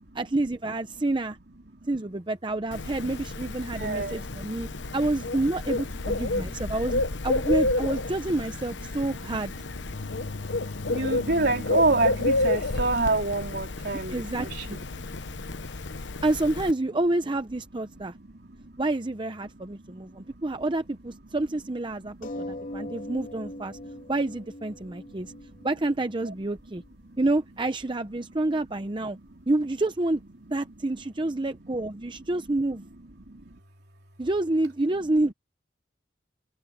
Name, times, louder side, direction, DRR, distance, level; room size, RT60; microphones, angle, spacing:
voice 1, 0.1-1.4 1.9-4.7 4.9-9.5 13.9-14.8 16.2-18.1 18.8-23.8 24.1-25.3 25.6-26.8 27.2-29.2 29.5-30.2 30.5-32.8 34.2-35.3, right 2 dB, 25° right, 0.7 m, -28 dB
Bird, 2.7-16.7, left 2 dB, 75° left, 1.0 m, -30 dB
voice 2, 3.7-4.9 6.2-6.8 9.9-10.3 10.9-15.6 17.9-18.9 19.7-20.4 22.0-23.1 23.9-24.1 24.8-25.7 26.2-26.3 27.0-27.2 28.4-28.5 29.1-29.2 30.7-31.3 31.6-31.8 32.8-32.9 33.2-33.6, right 2 dB, 60° right, 3.6 m, -31 dB
sound 1, 22.2-27.2 28.0-28.1 28.4-28.5, left 1 dB, 45° left, 2.8 m, -41 dB
head